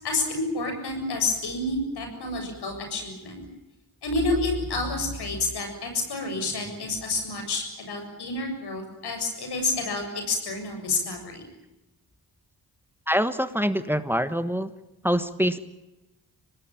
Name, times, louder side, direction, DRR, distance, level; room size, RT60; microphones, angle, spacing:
voice 1, 0.0-3.4 4.0-11.5, left 2 dB, 90° left, 5 dB, 7.4 m, -29 dB
voice 2, 13.1-14.7 15.0-15.6, equal, 5° right, 11 dB, 1.4 m, -25 dB
26.0 x 19.0 x 9.1 m, 0.99 s
cardioid pair, 90°, 38 cm